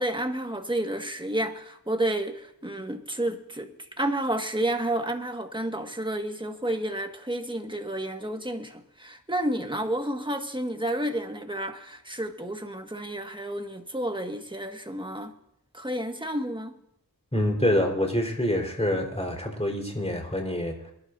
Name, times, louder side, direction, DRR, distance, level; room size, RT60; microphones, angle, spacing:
voice 1, 0.0-15.3 15.7-16.7, right 1 dB, 10° right, 1.7 m, -30 dB
voice 2, 17.3-20.9, left 1 dB, 15° left, 4.3 m, -26 dB
24.5 x 11.5 x 2.7 m
wide cardioid pair, 45°, 38 cm